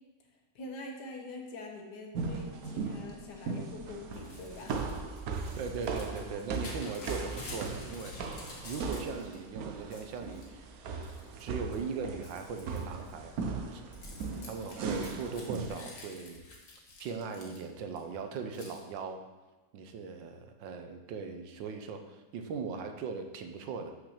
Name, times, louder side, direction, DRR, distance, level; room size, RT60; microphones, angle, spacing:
voice 1, 0.6-4.9, left 2 dB, 70° left, 1 dB, 1.7 m, -44 dB
sound 1, 2.1-15.7, right 4 dB, 60° right, 1.1 m, -38 dB
Crumpling crinkling / Tearing, 4.1-9.4 9.7-10.5 11.0-11.4 11.7-18.0 18.6-18.8, left 2 dB, 85° left, 2.2 m, -49 dB
voice 2, 5.5-10.7 11.4-13.3 13.7-13.8 14.5-16.4 17.0-19.2 19.7-23.9, right 5 dB, 85° right, 6 dB, 1.5 m, -39 dB
6.0 x 5.8 x 6.4 m, 1.2 s
omnidirectional pair, 1.9 m